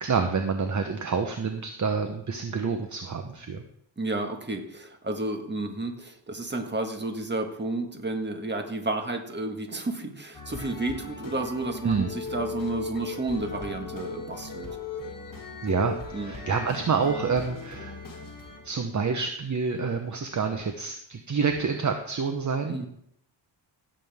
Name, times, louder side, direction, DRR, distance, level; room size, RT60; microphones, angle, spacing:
voice 1, 0.0-3.6 11.8-12.1 15.6-18.0 18.6-22.8, right 5 dB, 40° right, 5 dB, 1.0 m, -28 dB
voice 2, 4.0-14.7 16.1-16.3 22.7-22.9, right 2 dB, 20° right, 4 dB, 1.7 m, -31 dB
sound 1, 10.3-18.7, left 3 dB, 45° left, 2.1 m, -38 dB
16.5 x 7.7 x 3.6 m, 0.72 s
cardioid pair, 100°, 47 cm